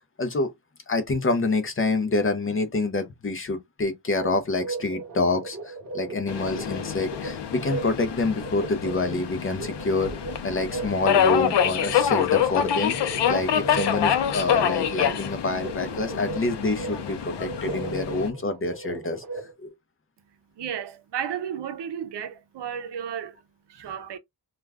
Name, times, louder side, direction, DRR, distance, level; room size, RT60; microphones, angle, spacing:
voice 1, 0.2-0.5 0.9-10.1 10.4-19.2 19.6-19.7, left 3 dB, 30° left, 0.6 m, -27 dB
sound 1, 4.2-19.5, right 3 dB, 55° right, 1.1 m, -37 dB
Subway metro underground, 6.3-18.3, left 9 dB, 85° left, 0.6 m, -26 dB
voice 2, 20.6-23.4 23.7-24.2, right 8 dB, 80° right, 0.6 m, -33 dB
2.3 x 2.2 x 3.3 m
wide cardioid pair, 115°, 41 cm